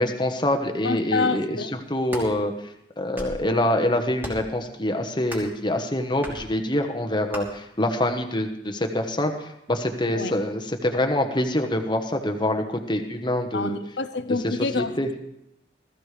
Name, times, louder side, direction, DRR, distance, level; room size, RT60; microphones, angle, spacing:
voice 1, 0.0-2.5 3.0-9.3 9.7-13.8 14.4-15.1, left 1 dB, 25° left, 1.2 m, -25 dB
voice 2, 0.8-1.7 10.1-10.3 13.5-15.2, left 3 dB, 60° left, 0.8 m, -27 dB
sound 1, 1.8-2.3 2.9-3.4 4.2-4.5 5.3-5.6 6.2-6.4 7.3-7.4, equal, 10° right, 3.1 m, -36 dB
20.0 x 14.5 x 3.4 m
head